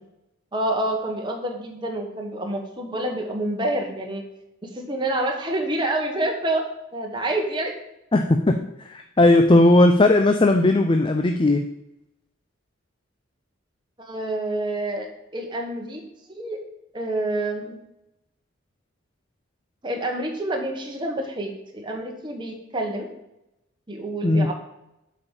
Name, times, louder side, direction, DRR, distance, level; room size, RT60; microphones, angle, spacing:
voice 1, 0.5-4.2 4.6-6.6 6.9-7.7 14.0-15.1 15.3-16.0 16.3-16.6 16.9-17.8 19.8-23.1 23.9-24.5, right 1 dB, 20° right, 1 dB, 1.3 m, -27 dB
voice 2, 8.1-11.6 24.2-24.5, left 2 dB, 25° left, 5 dB, 0.5 m, -17 dB
8.0 x 5.3 x 7.3 m, 0.86 s
head